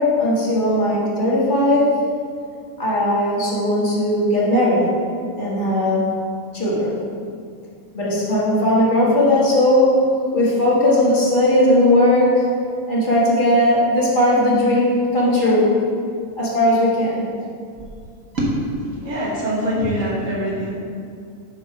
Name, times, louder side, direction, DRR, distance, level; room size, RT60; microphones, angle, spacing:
voice 1, 0.0-2.0 2.8-4.9 5.4-6.1 6.5-7.0 7.9-10.0 10.3-12.5 12.9-15.7 16.3-17.3, left 1 dB, 25° left, -7 dB, 1.1 m, -17 dB
voice 2, 19.0-20.7, equal, 60° right, -5 dB, 0.8 m, -23 dB
9.4 x 3.7 x 5.8 m, 2.3 s
omnidirectional pair, 3.5 m